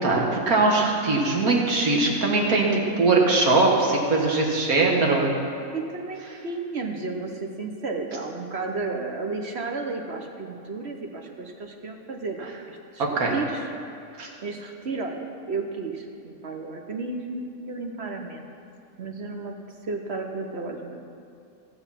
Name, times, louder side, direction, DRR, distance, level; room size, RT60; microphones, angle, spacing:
voice 1, 0.0-5.3 13.2-13.3 14.2-14.3, right 3 dB, 75° right, -1 dB, 2.0 m, -21 dB
voice 2, 5.7-13.7 14.4-18.5 19.0-19.5 19.9-21.0, right 3 dB, 50° right, 3 dB, 1.1 m, -33 dB
16.0 x 6.9 x 5.8 m, 2.5 s
omnidirectional pair, 1.5 m